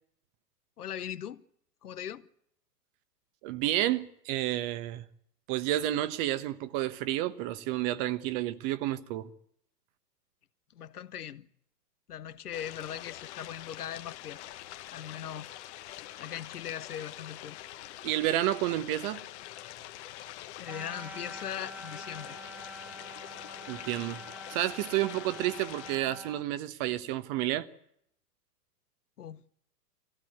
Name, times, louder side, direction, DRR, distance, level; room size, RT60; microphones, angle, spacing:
voice 1, 0.8-1.4 1.8-2.3 10.7-11.5 12.1-14.4 14.9-15.5 16.2-17.6 20.6-22.4 29.2-29.4, left 9 dB, 65° left, 1.1 m, -40 dB
voice 2, 3.4-5.0 5.5-9.3 18.0-19.2 23.7-24.2 24.5-27.7, right 14 dB, 35° right, 1.2 m, -30 dB
sound 1, 12.5-26.0, left 14 dB, 45° left, 1.4 m, -45 dB
sound 2, 20.6-26.4, equal, 5° right, 1.7 m, -46 dB
23.5 x 15.5 x 9.5 m
figure-of-eight pair, 105°, 48 cm